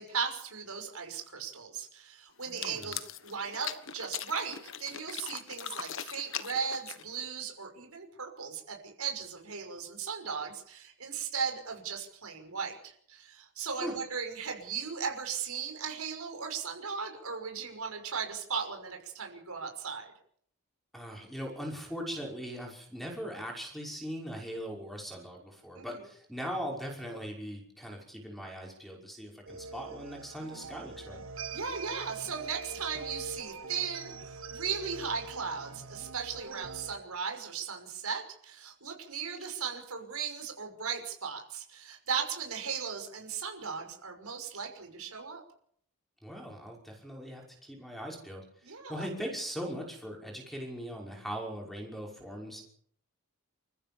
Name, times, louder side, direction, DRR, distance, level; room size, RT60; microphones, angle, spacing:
voice 1, 0.0-3.0 3.2-20.1 25.8-26.0 31.5-45.4 48.6-49.1, right 6 dB, 85° right, 4 dB, 5.9 m, -37 dB
sound 1, 2.4-7.3, left 9 dB, 60° left, 1.4 m, -40 dB
voice 2, 2.5-3.0 13.8-13.9 20.9-31.2 46.2-52.6, equal, ahead, 0 dB, 5.7 m, -40 dB
sound 2, 29.5-37.0, right 4 dB, 65° right, 2.0 m, -44 dB
28.5 x 15.0 x 7.2 m, 0.64 s
head